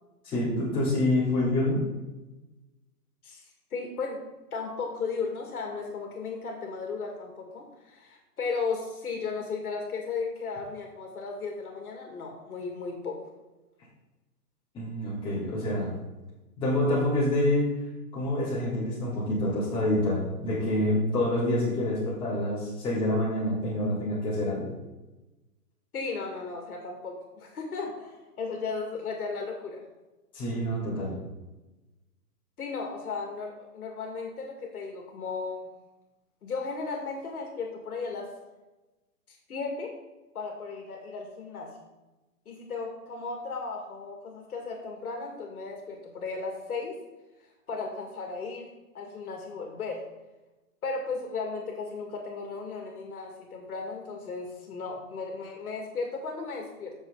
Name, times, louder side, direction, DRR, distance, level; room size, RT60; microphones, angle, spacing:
voice 1, 0.2-1.8 14.7-15.9 16.6-17.7 18.1-24.7 30.3-31.2, left 1 dB, 10° left, -10 dB, 3.8 m, -27 dB
voice 2, 3.7-4.2 4.5-13.2 25.9-29.8 32.6-35.7 36.4-38.3 39.5-39.9 40.3-41.7 42.5-47.0 47.7-48.7 48.9-50.1 50.8-56.9, left 4 dB, 70° left, 2 dB, 2.6 m, -35 dB
14.0 x 7.0 x 4.1 m, 1.1 s
hypercardioid pair, 170°, 46 cm